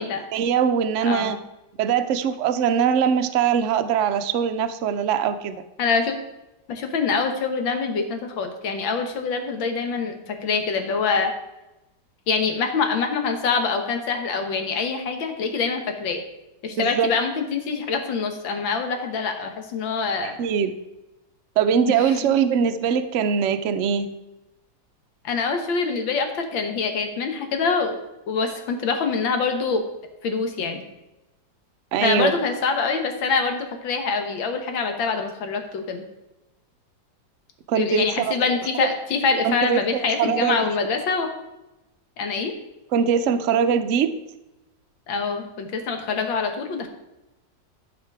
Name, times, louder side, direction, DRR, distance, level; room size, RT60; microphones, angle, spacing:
voice 1, 0.3-1.4 1.8-5.6 16.8-17.1 20.2-20.7 21.6-24.1 31.9-32.4 37.7-38.4 39.4-40.7 42.9-44.2, right 7 dB, 85° right, 9 dB, 0.6 m, -22 dB
voice 2, 1.1-1.4 5.8-6.2 6.7-11.3 12.3-16.2 16.6-20.4 22.1-22.3 25.2-28.0 28.3-29.8 30.2-30.8 32.0-36.0 37.8-41.3 42.2-42.5 45.1-46.9, left 5 dB, 85° left, 5 dB, 1.9 m, -25 dB
12.0 x 5.1 x 4.7 m, 0.97 s
omnidirectional pair, 2.0 m